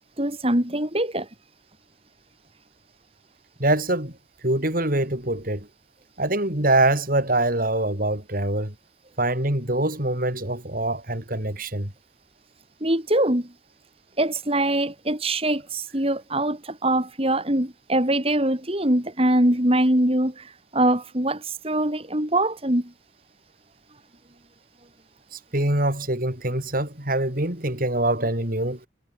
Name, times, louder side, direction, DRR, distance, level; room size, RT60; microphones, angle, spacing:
voice 1, 0.2-1.3 12.8-13.5 14.2-22.9, right 1 dB, 30° right, 3.6 m, -23 dB
voice 2, 3.6-4.1 4.4-5.7 6.2-8.7 9.2-11.9 25.5-28.8, right 1 dB, 45° right, 5.1 m, -24 dB
head